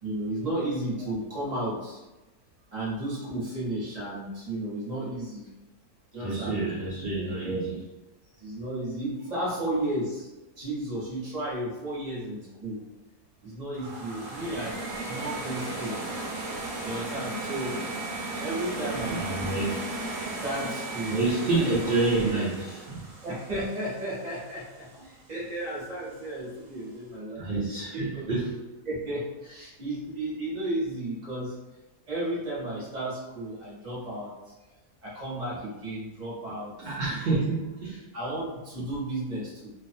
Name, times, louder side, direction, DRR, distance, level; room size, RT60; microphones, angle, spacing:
voice 1, 0.0-2.0 2.7-5.5 6.1-6.6 7.2-7.6 8.4-10.3 10.6-12.8 13.4-14.8 15.1-16.0 16.8-17.8 18.4-19.3 20.4-21.2 21.9-22.0 23.2-27.4 27.9-28.3 28.8-31.5 32.1-34.5 35.0-36.7 37.1-37.4 38.1-39.7, right 1 dB, 35° right, -7 dB, 0.7 m, -33 dB
voice 2, 6.2-7.8 19.0-19.8 21.1-23.0 27.4-28.6 36.8-38.0, right 3 dB, 75° right, -7 dB, 0.5 m, -28 dB
sound 1, 13.7-24.8, right 2 dB, 90° right, 1.2 m, -36 dB
2.5 x 2.3 x 2.5 m, 1.1 s
omnidirectional pair, 1.7 m